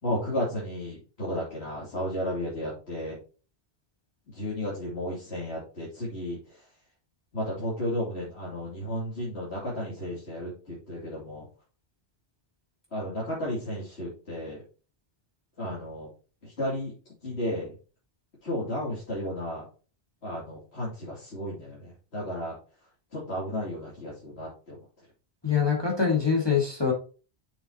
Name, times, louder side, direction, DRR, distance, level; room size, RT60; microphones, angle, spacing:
voice 1, 0.0-3.2 4.3-6.6 7.3-11.4 12.9-14.6 15.6-16.1 16.4-17.8 18.4-19.7 20.2-22.5 23.1-24.8, left 1 dB, 75° left, -7 dB, 3.3 m, -33 dB
voice 2, 25.4-26.9, left 6 dB, 25° left, -2 dB, 1.9 m, -24 dB
7.4 x 7.0 x 2.9 m, 0.35 s
omnidirectional pair, 1.1 m